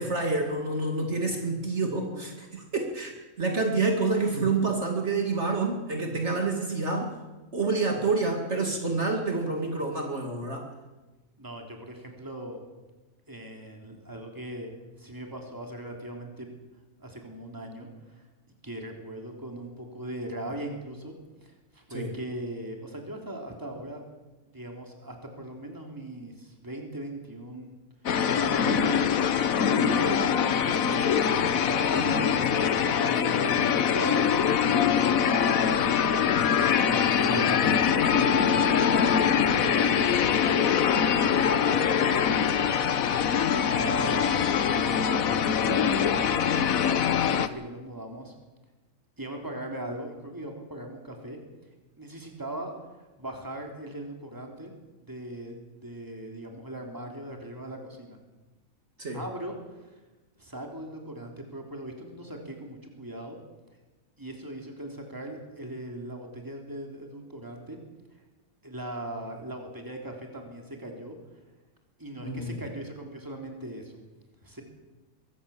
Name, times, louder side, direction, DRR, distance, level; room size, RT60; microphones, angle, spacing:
voice 1, 0.0-7.2 7.5-10.6 21.9-22.1 37.2-37.4 59.0-59.2 72.2-72.5, right 3 dB, 55° right, 2 dB, 2.7 m, -28 dB
voice 2, 11.4-12.6 13.3-16.5 17.0-18.3 18.6-21.1 21.4-24.0 24.5-27.8 28.3-29.4 29.8-34.4 34.7-36.3 36.9-38.6 39.5-40.8 41.2-42.2 43.5-44.3 44.7-48.3 49.2-51.4 52.0-54.7 55.1-58.2 59.1-60.0 60.4-63.4 64.2-67.8 68.6-71.2 72.0-74.0 74.4-74.6, right 1 dB, 15° right, 2 dB, 3.3 m, -39 dB
sound 1, 28.1-47.5, left 7 dB, 80° left, 1.4 m, -23 dB
23.0 x 16.0 x 7.1 m, 1.2 s
omnidirectional pair, 1.5 m